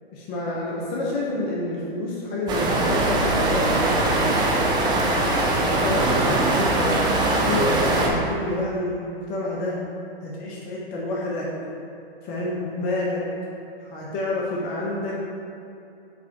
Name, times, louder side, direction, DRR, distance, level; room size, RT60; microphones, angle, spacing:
voice 1, 0.1-3.8 5.7-7.0 7.4-9.8 10.2-11.5 12.2-13.2 13.8-15.2, left 2 dB, 30° left, -4 dB, 0.9 m, -28 dB
sound 1, 2.5-8.1, right 2 dB, 15° right, 0.5 m, -21 dB
5.0 x 4.0 x 4.7 m, 2.7 s
hypercardioid pair, 120°, 31 cm